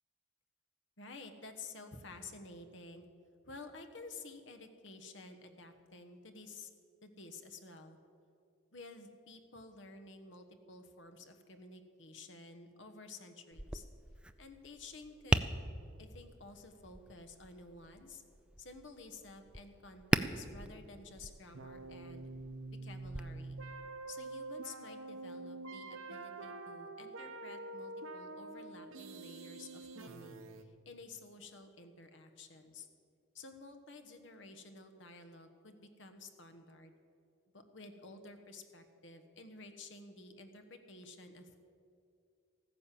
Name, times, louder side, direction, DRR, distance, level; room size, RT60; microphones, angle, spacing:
voice 1, 1.0-3.1 3.4-6.7 7.0-8.0 8.7-13.8 14.4-15.5 16.0-18.2 18.6-22.3 22.7-23.6 24.1-32.9 33.3-36.9 37.5-41.6, left 3 dB, 65° left, 7 dB, 1.3 m, -52 dB
Tap, 13.5-23.2, right 1 dB, 5° right, 0.3 m, -39 dB
sound 1, 21.5-30.6, right 2 dB, 90° right, 0.9 m, -46 dB
14.5 x 9.6 x 7.6 m, 2.5 s
head